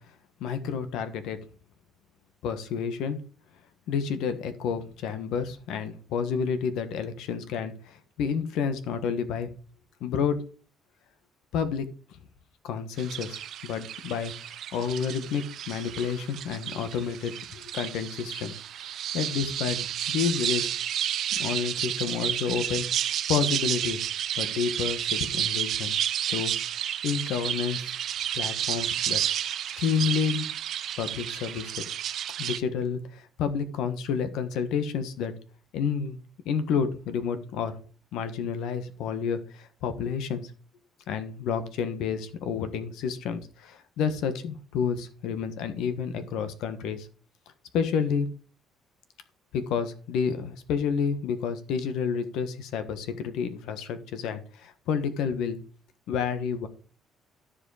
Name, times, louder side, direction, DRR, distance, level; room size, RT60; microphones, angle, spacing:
voice 1, 0.4-1.4 2.4-3.2 3.9-9.5 10.0-10.4 11.5-11.8 12.1-12.2 12.6-18.5 18.9-20.7 21.3-24.1 24.3-25.9 26.3-26.5 27.0-27.9 28.3-29.2 29.8-30.5 31.0-31.9 32.4-35.3 35.7-36.2 36.4-37.8 38.1-40.5 41.1-47.1 47.7-48.3 49.5-55.6 56.1-56.7, left 6 dB, 80° left, 10 dB, 1.3 m, -30 dB
sound 1, 13.0-32.6, right 10 dB, 60° right, 0.7 m, -31 dB
13.0 x 5.0 x 4.9 m, 0.39 s
cardioid pair, 120°, 0 cm